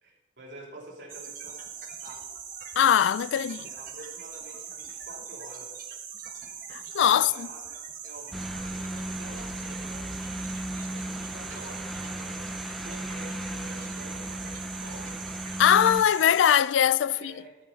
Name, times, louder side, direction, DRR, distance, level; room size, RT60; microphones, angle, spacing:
voice 1, 0.0-1.7 2.0-2.2 3.4-5.8 7.2-10.1 10.8-15.3 17.1-17.6, right 1 dB, 70° right, 3.1 m, -47 dB
sound 1, 1.1-16.6, right 7 dB, 45° right, 1.4 m, -41 dB
voice 2, 2.8-3.7 6.7-7.5 15.6-17.3, left 9 dB, 85° left, 0.3 m, -21 dB
sound 2, 8.3-16.0, equal, ahead, 0.6 m, -36 dB
13.5 x 6.4 x 5.3 m
head